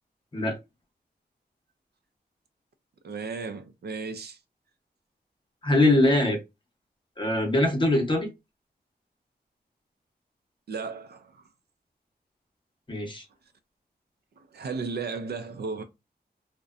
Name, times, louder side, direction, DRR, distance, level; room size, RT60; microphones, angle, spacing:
voice 1, 3.0-4.4 10.7-11.5 14.4-15.8, right 4 dB, 70° right, 0.4 m, -35 dB
voice 2, 5.6-6.4 7.2-8.3 12.9-13.2, left 1 dB, 30° left, 0.7 m, -22 dB
2.6 x 2.1 x 2.3 m
wide cardioid pair, 130°, 17 cm